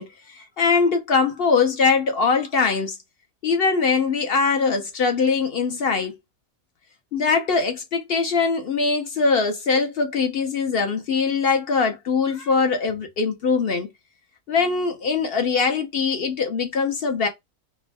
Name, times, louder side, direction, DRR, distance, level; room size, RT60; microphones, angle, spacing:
voice 1, 0.0-3.0 3.4-6.1 7.1-13.9 14.5-17.3, left 4 dB, 60° left, 0.7 m, -22 dB
3.4 x 2.2 x 3.2 m
omnidirectional pair, 1.6 m